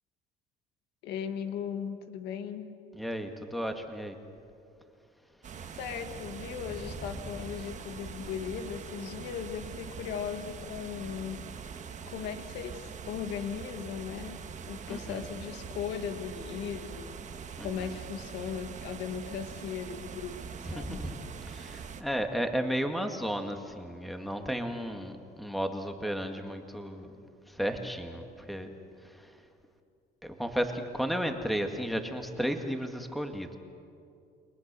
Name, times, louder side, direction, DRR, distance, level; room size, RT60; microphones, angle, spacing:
voice 1, 1.0-2.7 5.7-11.4 12.1-14.4 14.7-17.2 17.6-21.0, left 8 dB, 85° left, 8 dB, 1.8 m, -38 dB
voice 2, 2.9-4.2 6.7-6.8 14.9-15.2 17.6-17.9 20.6-21.2 21.5-27.1 27.5-28.7 29.1-29.3 30.2-33.6, equal, ahead, 5 dB, 1.9 m, -33 dB
sound 1, 5.4-22.0, right 6 dB, 45° right, 1.7 m, -43 dB
30.0 x 21.5 x 6.9 m, 2.5 s
cardioid pair, 110°, 17 cm